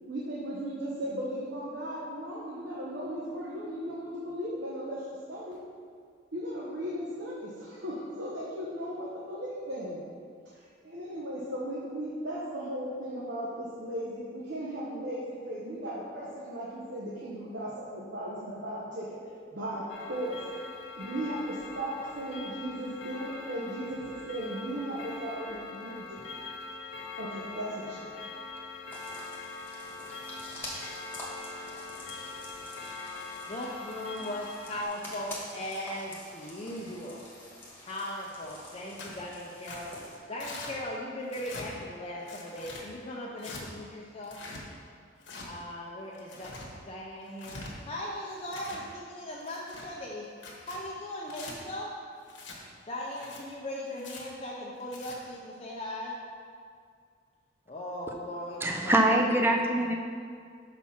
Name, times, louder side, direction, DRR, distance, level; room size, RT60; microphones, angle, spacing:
voice 1, 0.0-5.6 6.3-10.0 10.5-19.2 19.5-20.4 21.0-26.2 27.2-28.3, equal, 60° right, -6 dB, 1.0 m, -36 dB
Clock, 19.9-34.9, left 3 dB, 90° left, 0.8 m, -43 dB
sound 1, 28.9-40.2, left 1 dB, 10° left, 1.3 m, -46 dB
voice 2, 33.5-37.2 37.8-44.4 45.4-51.9 52.9-56.2 57.7-59.2, left 1 dB, 30° left, -4 dB, 0.6 m, -38 dB
Tearing, 39.0-39.2 39.6-39.8 40.4-40.7 41.3-41.7 42.3-42.8 43.4-43.6 44.2-44.6 45.2-45.5 46.1-46.7 47.3-47.7 48.3-48.8 49.4-49.9 50.4-50.8 51.3-51.5 52.3-52.6 53.1-53.4 54.0-54.2 54.8-55.2, left 3 dB, 75° left, 1.2 m, -44 dB
voice 3, 58.6-59.9, right 1 dB, 10° right, 2 dB, 0.5 m, -24 dB
5.9 x 4.4 x 5.7 m, 2.1 s
head